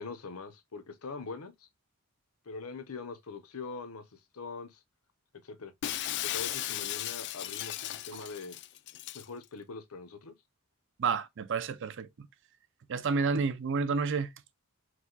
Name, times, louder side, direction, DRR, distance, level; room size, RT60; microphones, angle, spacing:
voice 1, 0.0-1.5 2.5-4.0 4.3-4.8 5.4-5.7 6.2-8.6 9.1-10.3, left 4 dB, 75° left, 0.8 m, -42 dB
Shatter, 5.8-9.3, left 13 dB, 55° left, 0.3 m, -36 dB
voice 2, 11.0-12.1 12.9-14.3, right 5 dB, 60° right, 0.5 m, -30 dB
4.7 x 2.2 x 3.9 m
head